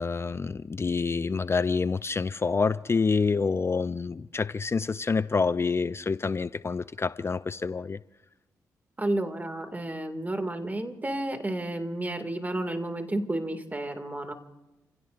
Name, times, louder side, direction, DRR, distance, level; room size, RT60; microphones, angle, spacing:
voice 1, 0.0-8.0, left 4 dB, 35° left, 0.5 m, -27 dB
voice 2, 9.0-14.3, right 1 dB, 25° right, 2.3 m, -31 dB
30.0 x 16.0 x 2.6 m
supercardioid pair, 45°, 7 cm